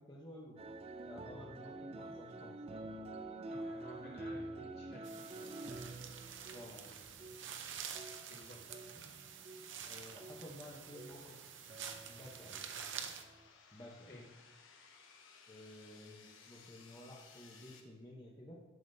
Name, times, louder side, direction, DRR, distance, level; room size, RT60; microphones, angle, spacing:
voice 1, 0.1-0.7 1.1-2.6 6.5-7.0 9.9-11.4 12.0-12.8 13.7-14.1 15.5-18.6, left 1 dB, 20° left, -4 dB, 0.9 m, -53 dB
sound 1, 0.6-10.7 10.9-11.4 11.7-13.5, right 2 dB, 30° right, 0.4 m, -48 dB
voice 2, 3.4-5.8 8.3-9.2 14.0-14.3, left 1 dB, 55° left, -5 dB, 2.6 m, -55 dB
sound 2, 5.0-13.2, right 8 dB, 65° right, 0.7 m, -48 dB
sound 3, 8.9-17.8, left 5 dB, 75° left, 1.0 m, -62 dB
11.0 x 7.2 x 2.7 m, 1.2 s
head